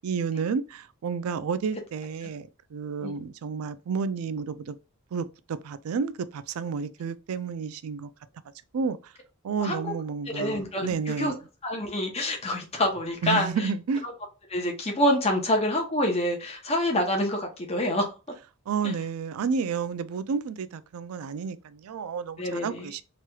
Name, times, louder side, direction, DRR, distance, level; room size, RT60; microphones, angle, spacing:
voice 1, 0.0-4.8 5.1-8.1 8.7-9.1 9.4-11.3 13.2-14.1 18.7-23.0, right 5 dB, 90° right, 0.4 m, -31 dB
voice 2, 10.3-11.3 11.6-13.5 14.5-18.1 22.4-22.9, left 1 dB, 30° left, 0.8 m, -26 dB
3.0 x 3.0 x 2.2 m
head